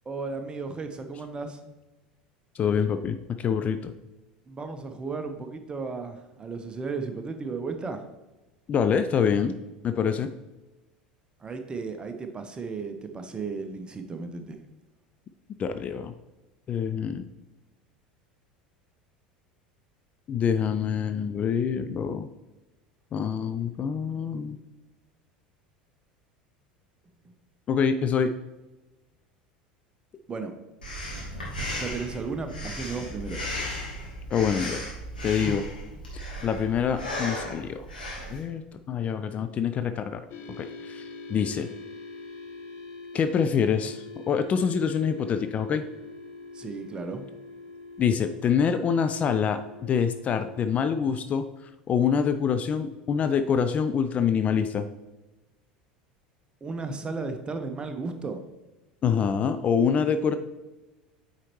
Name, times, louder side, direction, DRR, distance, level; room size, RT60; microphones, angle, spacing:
voice 1, 0.1-1.6 4.5-8.1 11.4-14.6 30.3-30.5 31.7-33.4 46.5-47.2 56.6-58.4 59.9-60.1, right 4 dB, 20° right, 7 dB, 0.8 m, -34 dB
voice 2, 2.5-3.9 8.7-9.5 9.8-10.3 15.6-16.1 16.7-17.2 20.3-22.3 23.1-24.6 27.7-28.3 34.3-34.8 35.2-35.7 36.4-37.9 38.3-38.6 38.9-40.2 40.6-41.0 41.3-41.7 43.1-45.9 48.0-51.4 51.9-54.9 59.0-60.4, left 7 dB, 30° left, 9 dB, 0.4 m, -25 dB
Breathing, 30.8-38.4, left 1 dB, 80° left, 1.8 m, -35 dB
sound 1, 40.3-50.6, left 3 dB, 45° left, 1.1 m, -43 dB
8.8 x 4.1 x 3.1 m, 1.1 s
figure-of-eight pair, 75°, 5 cm